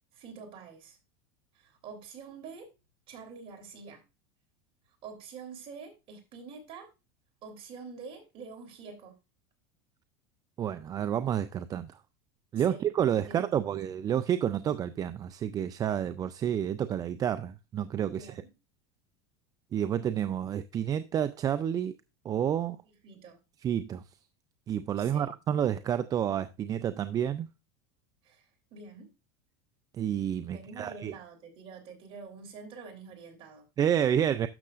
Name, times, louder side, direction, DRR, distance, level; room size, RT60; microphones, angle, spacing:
voice 1, 0.1-1.0 1.5-2.7 3.1-4.0 5.0-6.9 7.4-9.2 12.6-12.9 13.3-13.8 18.1-18.5 23.0-23.4 25.0-25.3 28.2-29.1 30.5-33.7, right 5 dB, 45° right, 3.4 m, -47 dB
voice 2, 10.6-12.0 12.5-18.3 19.7-22.0 22.2-22.8 23.6-24.0 24.7-27.5 30.0-31.1 33.8-34.5, right 9 dB, 25° right, 0.4 m, -29 dB
12.0 x 6.6 x 2.5 m
supercardioid pair, 125°, 14 cm